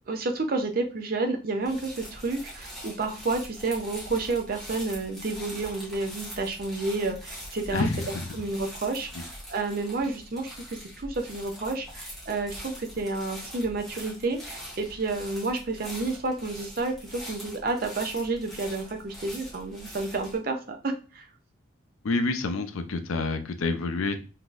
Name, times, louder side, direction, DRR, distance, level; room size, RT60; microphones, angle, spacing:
voice 1, 0.1-7.9 8.3-21.3, right 3 dB, 45° right, 4 dB, 0.5 m, -30 dB
sound 1, 1.6-20.4, equal, ahead, 1.0 m, -43 dB
voice 2, 7.7-8.4 22.0-24.2, left 3 dB, 80° left, 8 dB, 0.5 m, -28 dB
3.8 x 2.7 x 2.5 m, 0.35 s
head